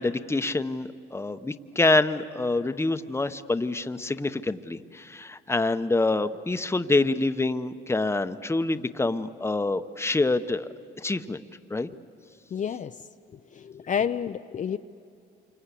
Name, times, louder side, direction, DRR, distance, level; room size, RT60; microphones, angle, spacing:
voice 1, 0.0-11.4 11.7-11.9, left 2 dB, 15° left, 10 dB, 0.9 m, -26 dB
voice 2, 12.5-13.0 13.5-14.8, left 8 dB, 40° left, 8 dB, 0.6 m, -29 dB
28.0 x 25.5 x 8.4 m, 2.4 s
cardioid pair, 90°, 20 cm